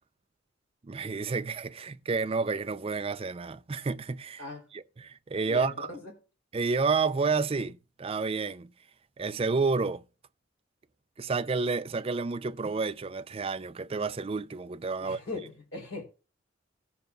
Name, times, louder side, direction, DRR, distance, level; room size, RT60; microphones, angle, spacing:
voice 1, 0.8-4.4 4.7-5.9 6.5-8.7 9.2-10.0 11.2-15.2, right 4 dB, 30° right, 0.4 m, -30 dB
voice 2, 5.5-6.1 15.0-16.0, left 2 dB, 85° left, 3.6 m, -39 dB
17.5 x 7.1 x 2.4 m
head